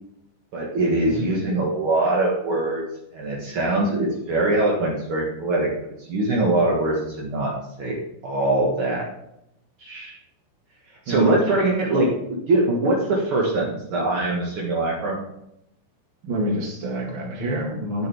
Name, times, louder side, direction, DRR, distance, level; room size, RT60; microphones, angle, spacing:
voice 1, 0.5-2.8 3.1-5.7 6.1-7.5 7.8-8.0 8.2-9.1 9.8-10.2 11.0-15.2, right 2 dB, 65° right, -3 dB, 1.3 m, -22 dB
voice 2, 11.1-11.4 16.2-18.1, equal, 50° right, 0 dB, 1.5 m, -27 dB
10.0 x 8.4 x 3.4 m, 0.78 s
omnidirectional pair, 4.9 m